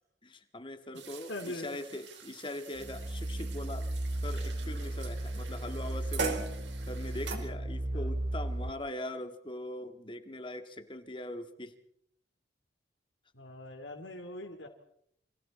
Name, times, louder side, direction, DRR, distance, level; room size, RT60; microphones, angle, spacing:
voice 1, 0.2-3.9 4.2-6.5 6.9-11.7, left 1 dB, 25° left, 8 dB, 1.9 m, -41 dB
sound 1, 0.9-7.4, right 4 dB, 80° right, 4.5 m, -42 dB
voice 2, 1.3-1.7 7.8-8.1 13.3-14.7, left 1 dB, 85° left, 4 dB, 2.8 m, -42 dB
sound 2, 2.8-8.7, right 1 dB, 30° right, 1.2 m, -35 dB
29.5 x 26.5 x 4.3 m, 0.70 s
head